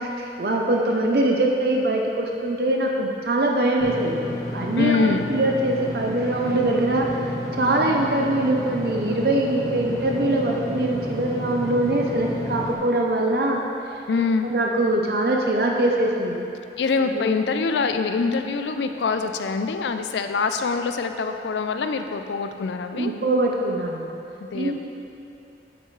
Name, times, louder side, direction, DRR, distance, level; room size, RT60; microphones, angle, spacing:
voice 1, 0.0-4.2 4.5-7.1 7.5-13.6 14.4-16.4 17.1-17.4 22.9-24.1 24.5-24.8, right 1 dB, 55° right, 0 dB, 0.6 m, -23 dB
Engine / Mechanisms, 3.8-12.7, left 1 dB, 20° left, 0.9 m, -31 dB
voice 2, 4.8-5.3 14.1-14.5 16.8-23.1 24.4-24.8, left 4 dB, 85° left, 7 dB, 0.4 m, -24 dB
8.8 x 8.0 x 3.2 m, 2.7 s
head